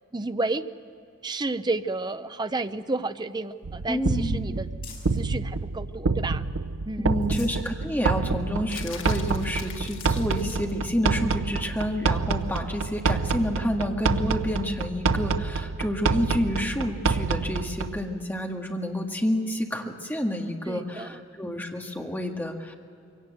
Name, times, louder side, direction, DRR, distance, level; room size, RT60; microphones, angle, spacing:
voice 1, 0.1-0.7 1.2-4.7 5.1-6.5 6.9-7.2 20.7-21.2, right 2 dB, 20° right, 11 dB, 0.6 m, -31 dB
sound 1, 2.6-5.3 5.8-6.6 7.0-7.7 8.1-8.2 8.6-8.7 9.3-9.4 9.8-10.3 11.1-11.2 12.9-13.0, left 6 dB, 45° left, 5.9 m, -50 dB
sound 2, 3.6-18.0, right 4 dB, 80° right, 0.6 m, -28 dB
voice 2, 3.9-4.5 7.0-22.7, equal, 10° left, 1 dB, 1.9 m, -29 dB
sound 3, 8.7-10.8 13.3-13.5, left 7 dB, 75° left, 1.9 m, -42 dB
23.0 x 17.5 x 8.0 m, 2.6 s
head